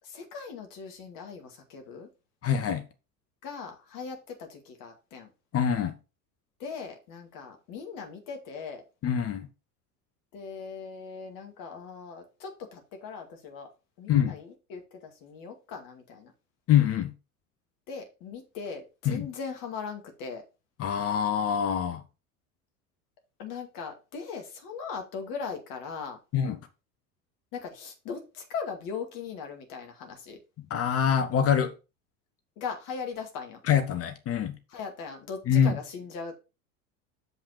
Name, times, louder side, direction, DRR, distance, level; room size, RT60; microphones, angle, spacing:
voice 1, 0.0-2.1 3.4-5.3 6.6-8.8 10.3-13.7 14.0-16.3 17.9-20.4 23.4-26.2 27.5-30.4 32.6-33.6 34.7-36.4, left 5 dB, 45° left, 2.2 m, -39 dB
voice 2, 2.4-2.8 5.5-5.9 9.0-9.5 14.1-14.4 16.7-17.1 19.1-19.3 20.8-22.0 26.3-26.6 30.7-31.7 33.7-34.6 35.5-35.7, left 8 dB, 30° left, 0.9 m, -25 dB
7.2 x 5.4 x 4.4 m
figure-of-eight pair, 70°, 46 cm